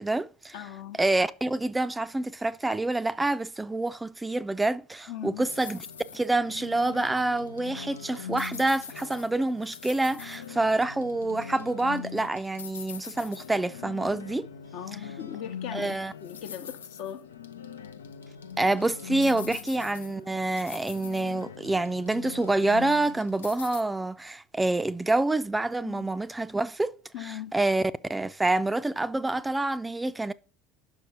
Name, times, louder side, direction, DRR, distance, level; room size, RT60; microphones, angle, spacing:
voice 1, 0.0-0.5 1.0-5.8 6.1-14.5 15.7-16.1 18.6-27.0 27.2-30.3, right 2 dB, 15° right, 0.4 m, -27 dB
voice 2, 0.5-1.0 5.1-5.5 14.7-17.3 19.5-19.6 25.8-26.1 27.1-27.5, left 10 dB, 65° left, 0.8 m, -39 dB
sound 1, 5.4-23.8, left 7 dB, 85° left, 0.4 m, -42 dB
5.8 x 5.2 x 5.7 m
hypercardioid pair, 70°, 0 cm